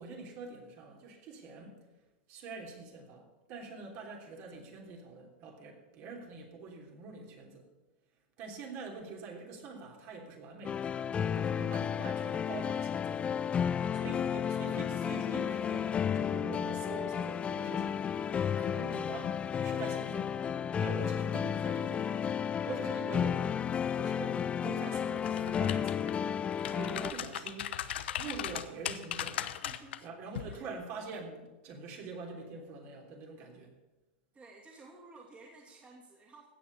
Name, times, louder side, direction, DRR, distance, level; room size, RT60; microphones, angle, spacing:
voice 1, 0.0-1.8 2.3-7.6 8.4-10.8 11.2-13.5 13.9-18.0 18.5-23.6 23.9-26.2 26.7-27.7 28.2-29.6 30.0-33.7, right 4 dB, 50° right, 1 dB, 3.3 m, -45 dB
sound 1, 10.6-27.1, left 8 dB, 20° left, 0.3 m, -32 dB
voice 2, 11.4-11.7 29.6-30.7 34.3-36.5, right 3 dB, 20° right, -1 dB, 2.6 m, -55 dB
sound 2, 25.2-26.1 26.5-30.0 30.4-30.6, left 11 dB, 80° left, 0.9 m, -38 dB
16.5 x 6.2 x 8.4 m, 1.1 s
supercardioid pair, 125°, 6 cm